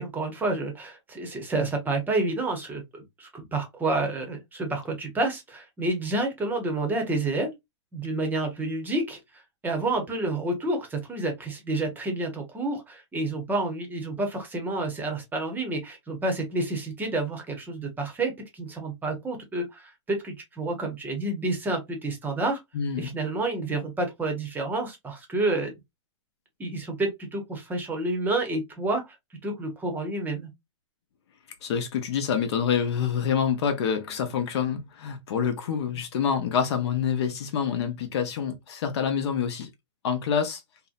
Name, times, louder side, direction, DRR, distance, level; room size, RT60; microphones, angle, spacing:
voice 1, 0.0-7.5 7.9-22.6 23.0-25.7 26.6-29.1 29.4-30.5, right 2 dB, 10° right, 0.7 m, -29 dB
voice 2, 22.7-23.1 31.6-39.7 40.0-40.6, left 7 dB, 60° left, 0.7 m, -27 dB
2.7 x 2.1 x 2.4 m
hypercardioid pair, 135°, 16 cm